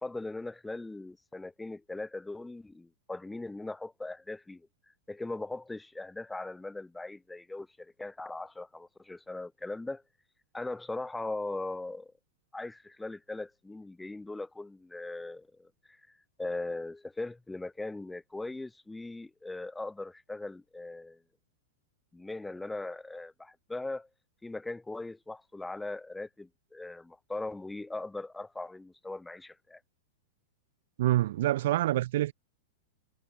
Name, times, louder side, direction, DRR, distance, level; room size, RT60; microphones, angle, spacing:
voice 1, 0.0-4.7 5.1-10.0 10.5-12.1 12.5-21.2 22.1-24.1 24.4-29.8, left 2 dB, 5° left, 2.6 m, -39 dB
voice 2, 31.0-32.3, right 14 dB, 55° right, 0.4 m, -26 dB
figure-of-eight pair, 95°, 0 cm